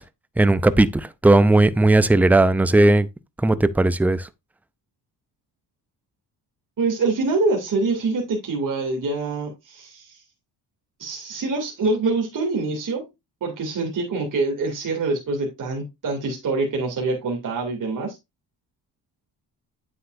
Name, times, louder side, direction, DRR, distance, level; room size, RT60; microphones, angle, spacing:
voice 1, 0.4-3.1 3.4-4.3, right 2 dB, 5° right, 0.4 m, -17 dB
voice 2, 6.8-10.2 11.0-13.0 13.4-18.2, right 3 dB, 50° right, 2.7 m, -25 dB
8.8 x 7.9 x 2.6 m
cardioid pair, 100°, 40 cm